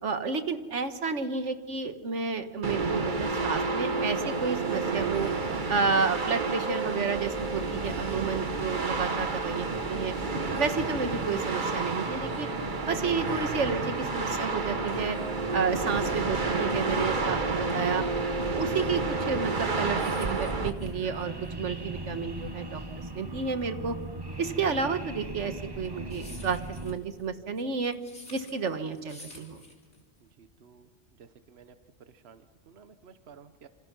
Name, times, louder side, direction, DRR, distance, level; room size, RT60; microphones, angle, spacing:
voice 1, 0.0-5.3 5.7-10.1 10.6-12.5 12.9-15.2 15.5-18.0 18.4-23.9 24.4-27.9 28.3-29.6, right 5 dB, 85° right, 9 dB, 1.7 m, -31 dB
sound 1, 2.6-20.7, right 3 dB, 45° right, 1.5 m, -30 dB
sound 2, 7.1-27.0, right 1 dB, 20° right, 1.3 m, -40 dB
sound 3, 19.9-30.3, left 2 dB, 85° left, 4.2 m, -52 dB
voice 2, 30.4-30.9 31.2-31.7 32.1-33.7, right 6 dB, 65° right, 10 dB, 1.2 m, -54 dB
27.0 x 27.0 x 6.1 m, 1.4 s
omnidirectional pair, 1.2 m